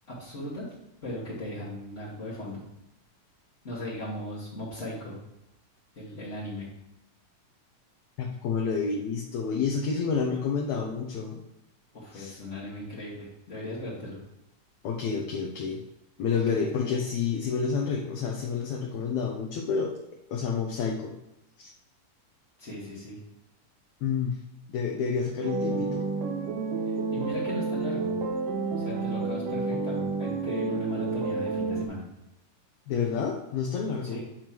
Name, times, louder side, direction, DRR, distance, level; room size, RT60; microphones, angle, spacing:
voice 1, 0.1-0.7 1.0-2.6 3.6-5.1 5.9-6.7 11.9-14.2 16.3-17.1 22.6-23.2 27.1-28.1 28.8-32.0 34.0-34.2, left 1 dB, 35° left, -9 dB, 1.2 m, -37 dB
voice 2, 8.2-11.4 12.1-12.4 14.8-15.8 16.2-19.9 20.3-21.1 21.6-21.7 24.0-24.4 24.7-26.0 32.9-34.2, left 5 dB, 75° left, 1 dB, 1.8 m, -29 dB
sound 1, 25.4-31.9, right 4 dB, 90° right, 2.3 m, -30 dB
9.0 x 3.1 x 5.9 m, 0.89 s
omnidirectional pair, 3.7 m